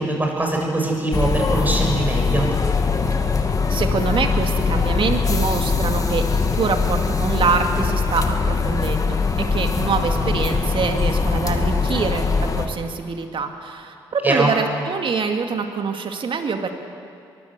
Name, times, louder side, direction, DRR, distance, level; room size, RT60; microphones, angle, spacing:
voice 1, 0.0-2.5 14.2-14.6, right 1 dB, 15° right, 0 dB, 7.4 m, -22 dB
sound 1, 1.1-12.7, left 4 dB, 30° left, 2.1 m, -21 dB
voice 2, 3.2-16.7, right 5 dB, 50° right, 5 dB, 2.4 m, -25 dB
22.5 x 15.5 x 8.3 m, 2.4 s
hypercardioid pair, 50°, 12 cm